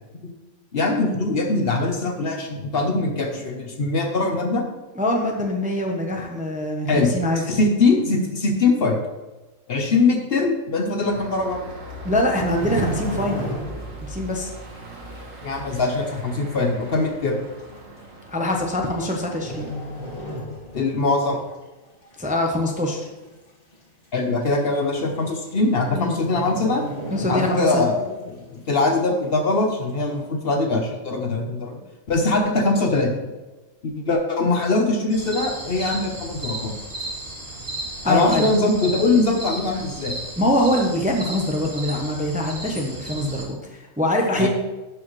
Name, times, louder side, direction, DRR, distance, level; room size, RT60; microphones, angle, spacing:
voice 1, 0.7-4.6 6.9-9.0 9.7-11.6 15.4-17.4 20.7-21.4 24.1-26.9 27.3-31.8 32.1-33.3 33.8-36.7 38.1-40.1 44.4-44.5, left 3 dB, 50° left, 3 dB, 1.0 m, -22 dB
voice 2, 5.0-7.4 12.0-13.4 14.0-14.5 18.3-19.7 22.2-23.1 25.9-26.2 27.1-27.8 38.0-38.5 40.4-44.5, left 1 dB, 10° right, 1 dB, 0.7 m, -23 dB
sound 1, 11.0-20.4, right 1 dB, 85° right, 1.7 m, -39 dB
sound 2, 12.3-14.0 14.3-14.6 15.1-15.2 16.1-16.2 16.5-16.6 17.4-17.6 18.7-19.1 19.4-21.0 21.3-21.5 22.0-22.5 22.9-23.0 23.2-23.3 23.7-23.8 24.8-24.9 25.2-25.5 25.7-25.9 26.2-27.9 28.2-28.3, equal, 35° left, 1.8 m, -33 dB
sound 3, 35.1-43.4, right 2 dB, 55° right, 2.4 m, -34 dB
12.0 x 4.8 x 3.2 m, 1.1 s
omnidirectional pair, 1.4 m